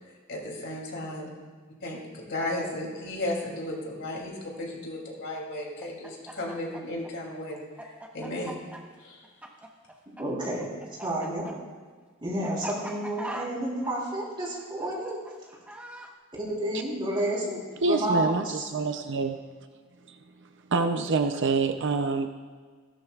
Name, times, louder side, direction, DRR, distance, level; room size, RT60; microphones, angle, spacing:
voice 1, 0.3-1.3 1.8-8.6 9.0-9.2, left 1 dB, 60° left, -2 dB, 2.9 m, -35 dB
Chicken rooster, 5.8-10.2 10.5-16.1, right 1 dB, 5° right, 1.1 m, -41 dB
voice 2, 10.2-10.7 11.0-11.4 12.2-15.2 16.4-18.3, right 1 dB, 25° right, -5 dB, 3.7 m, -30 dB
voice 3, 17.8-19.4 20.7-22.3, right 4 dB, 60° right, 7 dB, 0.6 m, -26 dB
16.0 x 12.5 x 2.4 m, 1.5 s
head